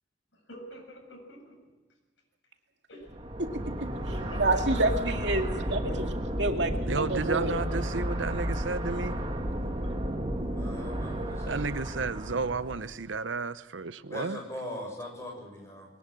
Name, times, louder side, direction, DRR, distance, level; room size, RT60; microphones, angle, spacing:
voice 1, 0.3-1.7 2.9-3.2 4.1-5.0 5.6-6.1, equal, 80° left, 7.6 m, -47 dB
sound 1, 3.1-12.9, equal, 30° right, 2.0 m, -33 dB
voice 2, 3.4-3.9 4.4-5.8 6.4-7.6, right 2 dB, 70° right, 2.3 m, -28 dB
voice 3, 6.9-9.2 11.5-14.4, right 4 dB, 85° right, 0.8 m, -32 dB
voice 4, 10.5-11.6 14.1-15.9, left 1 dB, 15° left, 7.6 m, -40 dB
22.5 x 19.5 x 7.6 m
head